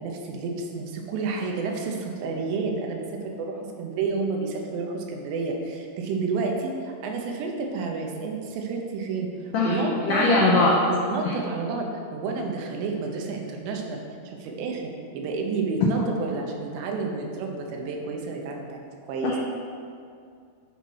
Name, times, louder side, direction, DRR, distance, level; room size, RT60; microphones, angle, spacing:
voice 1, 0.0-10.5 10.9-14.0 14.2-19.3, right 4 dB, 85° right, 1 dB, 3.0 m, -30 dB
voice 2, 10.0-10.7 11.3-11.4 19.2-19.4, left 3 dB, 85° left, -4 dB, 1.8 m, -21 dB
7.9 x 4.2 x 5.5 m, 2.3 s
omnidirectional pair, 4.8 m